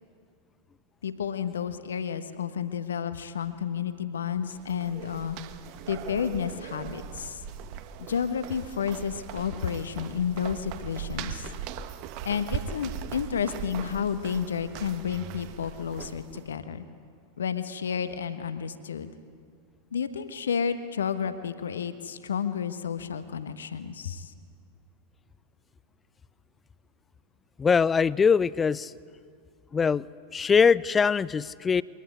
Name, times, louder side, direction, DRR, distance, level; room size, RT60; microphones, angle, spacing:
voice 1, 1.0-5.4 5.9-7.4 8.0-11.5 12.2-16.8 17.4-19.1 19.9-24.3, left 7 dB, 65° left, 11 dB, 1.3 m, -31 dB
sound 1, 4.4-16.5, right 8 dB, 45° right, 1.3 m, -39 dB
voice 2, 27.6-28.9 29.7-30.1 30.3-31.8, left 6 dB, 20° left, 22 dB, 0.5 m, -22 dB
23.5 x 18.0 x 9.6 m, 2.3 s
figure-of-eight pair, 90°, 0 cm